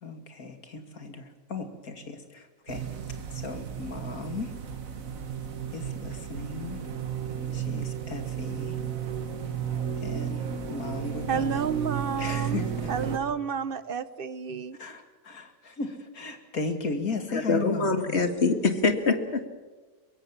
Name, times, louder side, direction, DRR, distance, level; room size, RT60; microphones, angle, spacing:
voice 1, 0.0-2.9 3.3-4.6 5.7-6.8 7.5-8.8 10.0-11.6 12.2-12.9 14.8-17.9, left 4 dB, 85° left, 2.8 m, -36 dB
sound 1, 2.7-13.2, right 8 dB, 70° right, 1.8 m, -33 dB
voice 2, 11.3-12.6 12.9-14.8, right 7 dB, 45° right, 0.9 m, -30 dB
voice 3, 17.3-19.4, left 3 dB, 50° left, 2.1 m, -24 dB
23.0 x 22.5 x 7.3 m
omnidirectional pair, 1.5 m